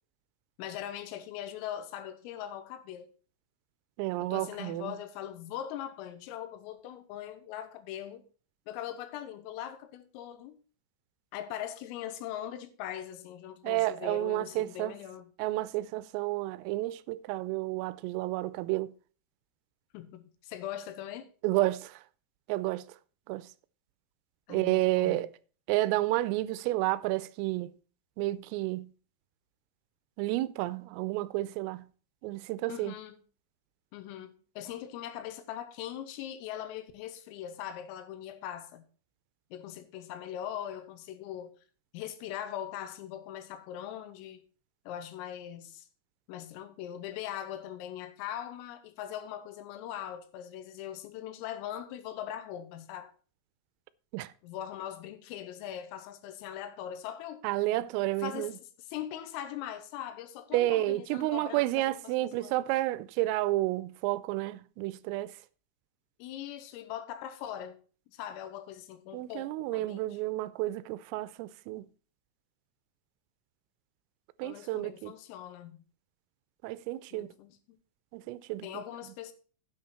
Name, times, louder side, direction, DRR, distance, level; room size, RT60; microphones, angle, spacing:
voice 1, 0.6-3.1 4.2-8.2 8.7-10.6 11.3-15.3 19.9-21.3 24.5-25.3 32.7-33.2 33.9-38.8 39.5-41.6 41.9-44.4 44.9-45.9 46.3-53.1 54.4-57.4 58.2-62.7 66.2-67.8 68.1-70.2 74.4-75.8 77.1-77.8 78.6-79.3, left 11 dB, 90° left, 3.7 m, -41 dB
voice 2, 4.0-4.9 13.6-15.0 15.4-18.9 21.4-22.0 22.5-22.8 23.3-23.5 24.5-25.3 25.7-27.7 28.2-28.9 30.2-31.8 32.2-32.9 54.1-54.3 57.4-58.5 60.5-65.3 69.1-71.8 74.4-75.1 76.6-77.3 78.1-78.8, right 17 dB, 85° right, 3.3 m, -31 dB
10.0 x 8.3 x 4.2 m
omnidirectional pair, 5.9 m